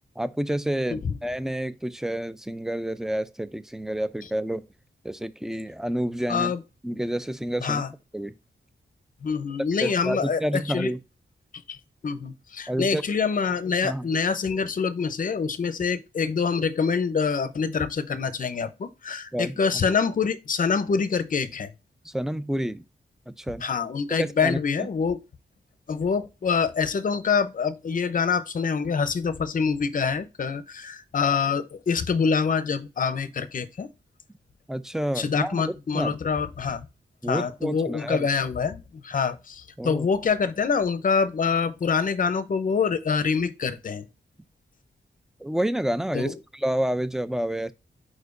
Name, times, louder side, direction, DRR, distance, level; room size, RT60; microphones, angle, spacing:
voice 1, 0.2-4.6 5.0-6.5 6.8-7.8 8.1-8.3 9.8-11.0 12.7-13.0 13.8-14.0 19.3-19.6 22.0-22.8 23.3-23.6 24.1-24.9 34.7-36.2 37.2-38.3 39.8-40.1 45.4-47.7, right 1 dB, 5° right, 0.4 m, -29 dB
voice 2, 6.3-6.6 7.6-7.9 9.2-10.9 11.7-11.8 12.0-21.7 23.6-25.2 25.9-33.9 35.2-36.9 37.3-44.1 46.1-46.3, left 5 dB, 45° left, 0.6 m, -25 dB
4.8 x 4.3 x 2.5 m
wide cardioid pair, 100°, 19 cm